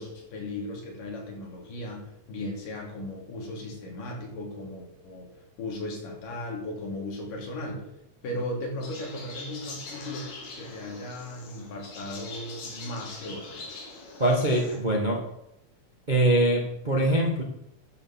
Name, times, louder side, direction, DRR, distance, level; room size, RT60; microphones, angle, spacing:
voice 1, 0.0-5.3 5.6-7.9 8.2-13.7, left 1 dB, 85° left, 0 dB, 4.3 m, -37 dB
sound 1, 8.8-14.8, left 3 dB, 60° left, 3.6 m, -43 dB
voice 2, 14.2-15.2 16.1-17.4, right 1 dB, 30° right, 1 dB, 0.8 m, -23 dB
10.5 x 6.9 x 7.2 m, 0.82 s
omnidirectional pair, 3.7 m